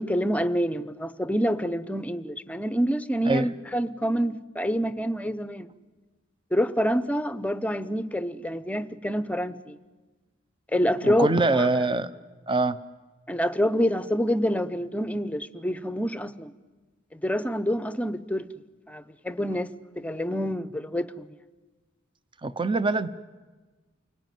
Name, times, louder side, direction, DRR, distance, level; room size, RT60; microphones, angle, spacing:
voice 1, 0.0-5.7 6.5-9.8 10.7-11.7 13.3-16.5 17.1-18.5 18.9-21.4, equal, 5° left, 0.7 m, -27 dB
voice 2, 11.0-12.1 12.5-12.8 22.4-23.1, right 3 dB, 25° right, 0.8 m, -23 dB
29.0 x 19.0 x 9.3 m
head